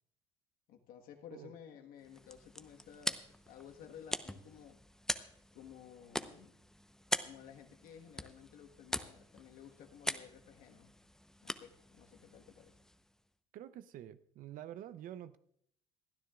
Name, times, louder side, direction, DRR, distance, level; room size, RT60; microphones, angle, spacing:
voice 1, 0.7-4.8 5.5-6.6 7.2-10.9 11.4-12.8, left 8 dB, 70° left, 4 dB, 1.5 m, -54 dB
sound 1, 2.0-13.2, left 1 dB, 5° left, 0.8 m, -43 dB
voice 2, 13.5-15.4, right 11 dB, 65° right, 14 dB, 0.7 m, -48 dB
27.5 x 10.0 x 2.4 m, 0.71 s
hypercardioid pair, 65°, 15 cm